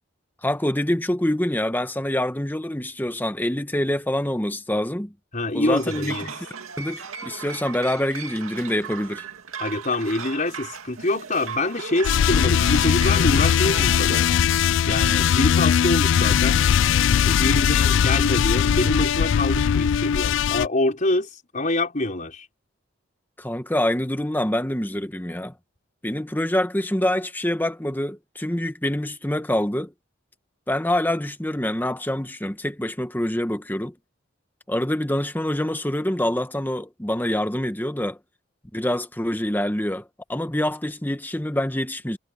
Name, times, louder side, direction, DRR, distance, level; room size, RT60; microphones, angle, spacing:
voice 1, 0.4-5.1 5.5-6.3 6.8-9.2 23.4-25.5 26.0-29.9 30.7-33.9 34.7-38.2 38.7-42.2, left 1 dB, 10° left, 1.1 m, -26 dB
voice 2, 5.3-6.3 9.6-14.3 14.9-16.6 17.2-22.5, left 2 dB, 40° left, 4.8 m, -25 dB
sound 1, 5.7-14.3, right 6 dB, 90° right, 2.4 m, -37 dB
sound 2, 12.0-20.7, left 8 dB, 60° left, 0.3 m, -20 dB
head